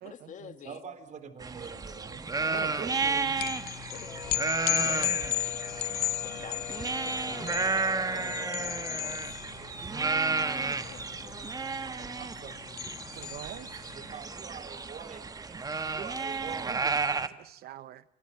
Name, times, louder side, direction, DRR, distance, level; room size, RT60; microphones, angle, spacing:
voice 1, 0.0-0.8 2.3-3.1 3.9-4.1 6.2-9.4 10.5-11.3, left 8 dB, 50° left, 1.9 m, -48 dB
voice 2, 0.6-2.6 8.9-9.2 9.6-10.5 11.8-13.0 13.9-15.6 15.9-16.7, right 6 dB, 45° right, 3.7 m, -46 dB
sound 1, 1.4-17.3, right 4 dB, 20° right, 1.4 m, -32 dB
voice 3, 2.5-3.4 10.2-10.5 13.1-13.7 16.6-18.0, right 13 dB, 70° right, 0.8 m, -44 dB
sound 2, 3.4-14.0, left 14 dB, 70° left, 0.9 m, -35 dB
sound 3, 3.9-9.2, left 4 dB, 25° left, 1.1 m, -44 dB
27.5 x 27.5 x 5.7 m
cardioid pair, 110°, 17 cm